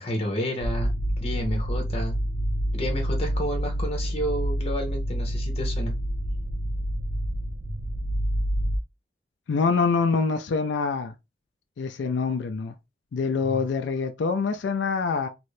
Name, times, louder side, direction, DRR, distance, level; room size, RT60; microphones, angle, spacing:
voice 1, 0.0-2.2 2.7-6.0 13.5-13.6, equal, 35° left, 1.0 m, -31 dB
sound 1, 0.6-8.8, equal, 65° right, 0.5 m, -28 dB
voice 2, 9.5-11.1 11.8-12.7 13.1-15.3, left 4 dB, 85° left, 0.4 m, -25 dB
3.0 x 2.7 x 3.2 m
head